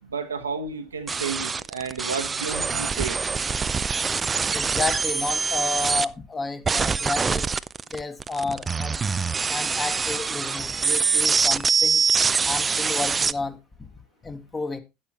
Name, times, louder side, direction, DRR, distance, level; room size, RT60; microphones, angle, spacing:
voice 1, 0.0-3.2, right 5 dB, 85° right, 1.1 m, -32 dB
sound 1, 1.1-6.1 6.7-13.3, right 5 dB, 25° right, 0.4 m, -24 dB
voice 2, 4.5-7.5 7.9-9.0 9.5-12.0 12.4-13.6 14.2-14.8, left 3 dB, 20° left, 1.7 m, -31 dB
11.0 x 9.7 x 3.0 m
figure-of-eight pair, 65°, 0 cm